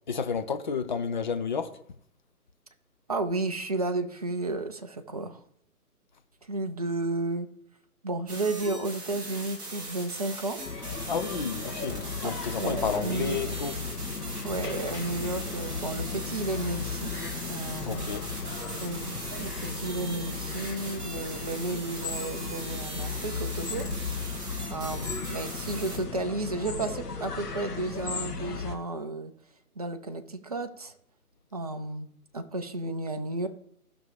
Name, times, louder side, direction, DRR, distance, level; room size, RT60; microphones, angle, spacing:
voice 1, 0.1-1.8 11.1-13.8 17.9-18.3, left 6 dB, 30° left, 0.6 m, -31 dB
voice 2, 3.1-5.4 6.4-7.5 8.0-10.6 12.2-12.3 12.6-13.5 14.4-17.1 17.5-18.1 18.8-24.2 24.7-29.3 29.8-30.9 31.5-33.5, right 2 dB, 25° right, 0.6 m, -33 dB
sound 1, 8.3-26.0, right 2 dB, 10° right, 2.0 m, -40 dB
sound 2, 10.6-28.8, left 5 dB, 85° left, 2.2 m, -36 dB
16.5 x 6.1 x 3.4 m
figure-of-eight pair, 150°, 46 cm